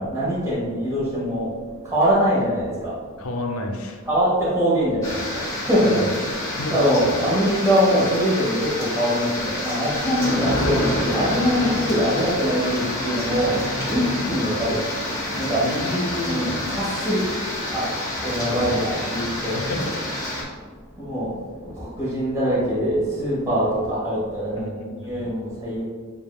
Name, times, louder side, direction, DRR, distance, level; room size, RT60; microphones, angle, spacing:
voice 1, 0.0-1.5 1.8-2.9 4.1-5.2 5.7-6.0 6.7-13.5 13.9-14.0 14.3-14.8 15.4-15.6 16.2-17.2 17.7-17.9 18.2-19.7 21.0-21.3 21.8-24.7 25.0-25.8, equal, 15° right, -8 dB, 1.4 m, -23 dB
voice 2, 3.2-4.0 5.9-6.0 6.5-6.8 15.6-16.5 19.4-20.0 24.6-25.2, left 2 dB, 70° left, 4 dB, 0.6 m, -30 dB
sound 1, 5.0-20.4, left 1 dB, 15° left, 1.0 m, -28 dB
7.2 x 2.8 x 2.3 m, 1.5 s
head